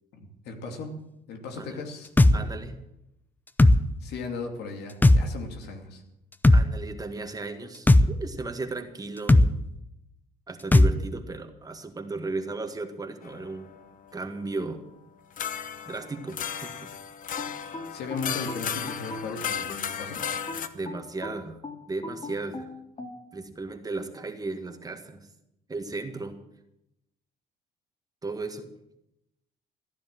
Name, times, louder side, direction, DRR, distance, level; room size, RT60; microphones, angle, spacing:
voice 1, 0.1-0.9 1.3-2.4 4.0-6.0 17.9-20.2, left 4 dB, 75° left, 4 dB, 2.7 m, -37 dB
sound 1, 2.2-2.4 3.6-3.8 5.0-5.2 6.4-6.6 7.9-8.1 9.3-9.5 10.7-10.9, left 1 dB, 10° left, 0.6 m, -15 dB
voice 2, 2.3-2.8 6.5-9.5 10.5-13.7 14.1-14.8 15.8-16.9 20.7-21.6 21.9-22.7 23.3-25.3 25.7-26.4 28.2-28.7, right 3 dB, 20° right, 6 dB, 1.8 m, -35 dB
sound 2, 13.2-14.2 15.4-20.7, left 8 dB, 50° left, 1.1 m, -35 dB
sound 3, 17.4-20.0 20.5-23.2, left 2 dB, 30° left, 2.6 m, -39 dB
15.5 x 10.5 x 7.6 m, 0.85 s
cardioid pair, 110°, 17 cm